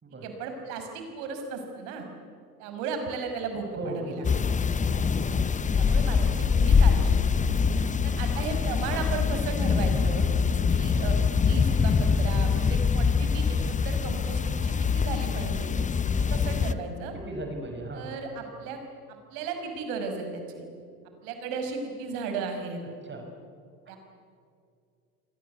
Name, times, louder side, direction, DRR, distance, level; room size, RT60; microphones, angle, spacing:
voice 1, 0.2-2.1 2.6-4.2 5.7-7.2 8.0-10.3 10.7-15.7 16.2-17.1 17.9-18.8 19.1-20.6 21.2-22.8 23.9-24.0, right 5 dB, 55° right, 5 dB, 5.8 m, -35 dB
voice 2, 3.8-4.4 6.2-6.5 12.2-12.5 17.1-18.2 23.0-23.3, right 1 dB, 20° right, 3 dB, 5.6 m, -37 dB
sound 1, 4.2-16.7, left 5 dB, 15° left, 1.0 m, -24 dB
29.0 x 23.0 x 8.5 m, 2.4 s
figure-of-eight pair, 75°, 48 cm